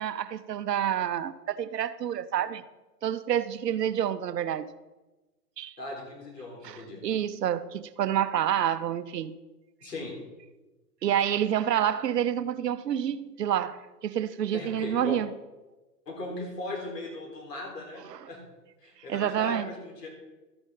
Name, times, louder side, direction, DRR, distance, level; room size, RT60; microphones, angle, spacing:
voice 1, 0.0-2.6 3.0-4.7 5.6-5.7 6.6-9.4 11.0-15.3 18.1-18.3 19.1-19.7, right 10 dB, 85° right, 0.8 m, -28 dB
voice 2, 5.8-7.0 9.8-10.1 14.5-15.2 16.1-18.4 18.8-20.1, left 2 dB, 90° left, 4.1 m, -38 dB
13.0 x 8.9 x 3.8 m
hypercardioid pair, 120°, 47 cm